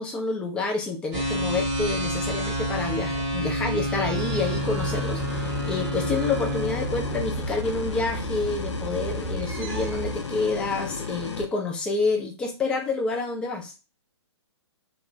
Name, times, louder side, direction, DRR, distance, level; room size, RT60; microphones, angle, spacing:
voice 1, 0.0-13.7, left 3 dB, 5° left, 2 dB, 0.3 m, -28 dB
sound 1, 1.1-10.2, right 1 dB, 25° right, 0.8 m, -29 dB
sound 2, 4.1-11.4, left 5 dB, 75° left, 0.4 m, -34 dB
2.3 x 2.0 x 2.6 m, 0.31 s
figure-of-eight pair, 125°, 15 cm